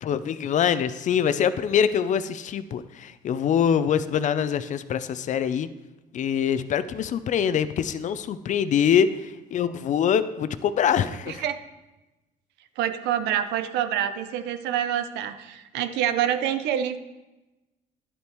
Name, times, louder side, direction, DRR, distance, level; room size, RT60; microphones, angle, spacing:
voice 1, 0.0-5.7 6.1-11.4, left 8 dB, 45° left, 13 dB, 0.5 m, -24 dB
voice 2, 11.3-11.6 12.8-17.0, right 10 dB, 85° right, 11 dB, 0.6 m, -26 dB
11.0 x 8.4 x 3.0 m, 1.1 s
cardioid pair, 110°, 17 cm